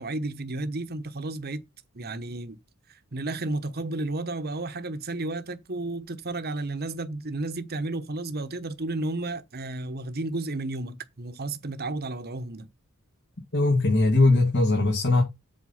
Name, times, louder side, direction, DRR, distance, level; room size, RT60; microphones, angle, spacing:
voice 1, 0.0-1.6 1.9-2.6 2.9-12.7, right 2 dB, 45° right, 1.1 m, -32 dB
voice 2, 13.5-15.2, left 2 dB, 55° left, 2.4 m, -20 dB
7.8 x 4.5 x 5.7 m
head